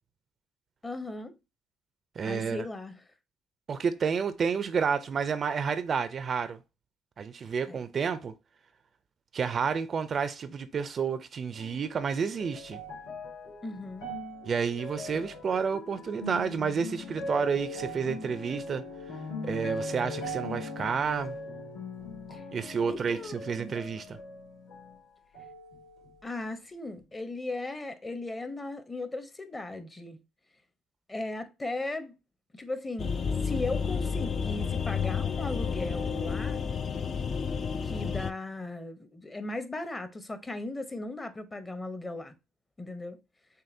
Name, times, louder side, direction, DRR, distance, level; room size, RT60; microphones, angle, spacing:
voice 1, 0.8-1.3 2.2-3.0 7.7-7.8 13.6-14.1 22.3-22.5 22.9-23.8 26.2-30.2 31.1-32.1 32.5-33.1 33.4-36.6 37.8-42.3 42.8-43.2, left 2 dB, 20° left, 0.7 m, -37 dB
voice 2, 2.2-2.7 3.7-6.6 7.2-8.3 9.3-12.8 14.5-18.8 19.4-21.3 22.5-24.2, right 6 dB, 45° right, 0.4 m, -30 dB
sound 1, 11.5-25.0 25.3-26.3 27.0-27.1, left 2 dB, 90° left, 2.1 m, -40 dB
sound 2, 33.0-38.3, left 6 dB, 40° left, 0.3 m, -31 dB
6.5 x 2.2 x 2.6 m
cardioid pair, 95°, 0 cm